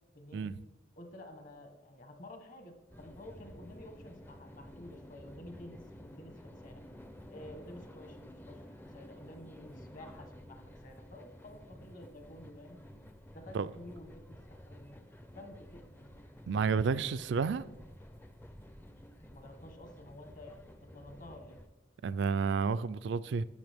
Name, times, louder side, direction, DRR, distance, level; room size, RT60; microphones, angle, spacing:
voice 1, 0.1-0.5 1.0-6.8 7.3-8.2 8.5-12.8 13.3-15.1 15.3-16.0 19.3-21.6, left 1 dB, 40° left, 1.1 m, -51 dB
sound 1, 2.9-21.7, equal, 10° left, 0.4 m, -52 dB
voice 2, 16.5-17.7 22.0-23.4, right 5 dB, 60° right, 0.3 m, -30 dB
12.0 x 7.2 x 3.5 m
head